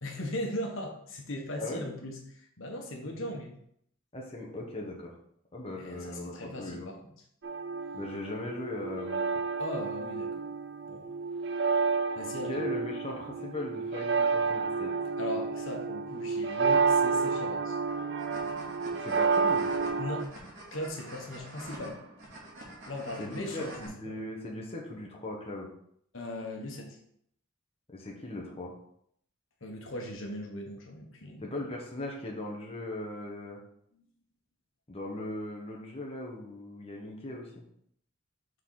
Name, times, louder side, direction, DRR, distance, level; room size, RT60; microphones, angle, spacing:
voice 1, 0.0-3.5 5.8-7.1 9.6-10.4 10.9-11.0 12.1-12.7 15.2-17.8 20.0-20.3 20.7-22.0 22.8-23.7 24.0-24.1 26.1-27.0 29.6-31.5 33.9-34.0, left 1 dB, 75° left, 1 dB, 1.4 m, -38 dB
voice 2, 4.1-5.1 5.5-6.9 7.9-9.2 12.5-14.9 19.0-19.7 23.2-25.7 27.9-28.7 31.4-33.6 34.9-37.6, left 1 dB, 30° left, -1 dB, 1.2 m, -39 dB
sound 1, 7.4-20.3, right 5 dB, 60° right, 0.6 m, -30 dB
sound 2, 17.9-23.9, right 1 dB, 85° right, 2.4 m, -47 dB
6.5 x 4.0 x 4.8 m, 0.68 s
head